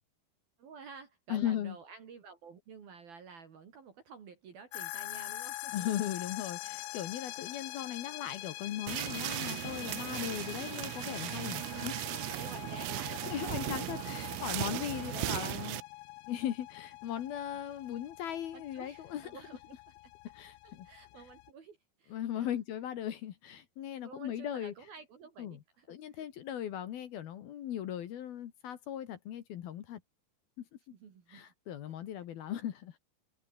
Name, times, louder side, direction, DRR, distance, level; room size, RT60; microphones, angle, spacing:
voice 1, 0.6-5.9 12.4-13.7 17.5-17.6 18.5-19.8 20.6-22.6 24.0-25.9 26.1-26.2 30.9-31.5, right 5 dB, 50° right, 4.4 m, -51 dB
voice 2, 1.3-1.8 5.7-12.2 13.3-15.8 16.3-19.3 20.3-20.9 22.1-24.7 25.4-25.6 25.9-30.0 30.6-30.7 31.3-33.0, left 11 dB, 65° left, 2.9 m, -38 dB
sound 1, 4.7-21.5, left 20 dB, 80° left, 2.8 m, -45 dB
sound 2, 8.9-15.8, right 20 dB, 85° right, 3.3 m, -37 dB
omnidirectional pair, 5.7 m